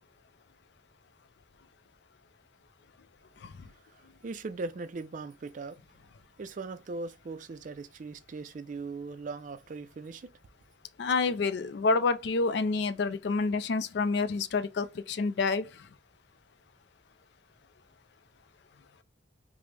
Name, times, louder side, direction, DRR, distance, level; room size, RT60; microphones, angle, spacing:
voice 1, 3.9-5.8 6.4-10.3, right 3 dB, 45° right, 0.3 m, -39 dB
voice 2, 11.0-15.7, left 4 dB, 65° left, 0.4 m, -28 dB
4.9 x 2.0 x 3.2 m
head